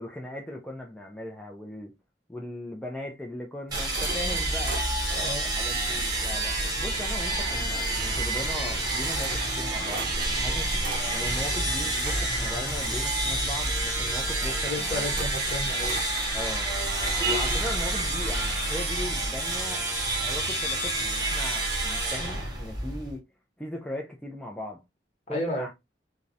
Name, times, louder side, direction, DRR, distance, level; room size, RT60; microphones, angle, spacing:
voice 1, 0.0-1.9 2.3-4.9 5.5-10.7 11.1-15.2 16.3-16.7 17.2-19.9 20.2-23.2 23.6-24.8 25.3-25.7, left 1 dB, 5° left, 0.3 m, -38 dB
sound 1, 3.7-23.2, right 2 dB, 20° right, 0.8 m, -28 dB
sound 2, 3.7-17.7, right 2 dB, 55° right, 0.5 m, -40 dB
voice 2, 5.1-5.5 14.6-16.0 25.3-25.7, left 1 dB, 40° left, 1.0 m, -33 dB
Rattle (instrument), 10.3-15.1, left 5 dB, 80° left, 0.6 m, -39 dB
2.4 x 2.0 x 2.6 m
head